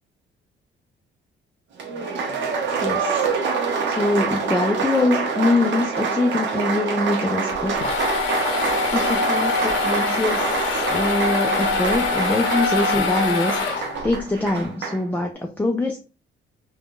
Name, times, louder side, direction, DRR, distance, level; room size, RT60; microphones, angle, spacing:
Applause, 1.8-15.0, right 5 dB, 65° right, 0.7 m, -26 dB
voice 1, 2.8-3.2 3.9-7.8 8.9-16.0, left 2 dB, 10° left, 1 dB, 0.4 m, -24 dB
sound 1, 7.5-14.2, left 4 dB, 80° left, 0.7 m, -24 dB
3.4 x 2.2 x 2.4 m, 0.34 s
cardioid pair, 90°, 20 cm